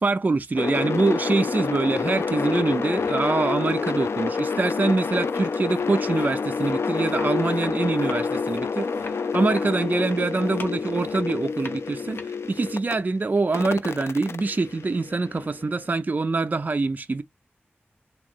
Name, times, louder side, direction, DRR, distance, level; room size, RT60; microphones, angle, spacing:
voice 1, 0.0-17.2, right 3 dB, 40° right, 0.4 m, -25 dB
sound 1, 0.6-12.9 13.5-15.7, left 5 dB, 90° left, 0.4 m, -28 dB
sound 2, 5.3-14.0, left 3 dB, 55° left, 0.8 m, -45 dB
3.6 x 3.0 x 2.4 m
wide cardioid pair, 75°, 4 cm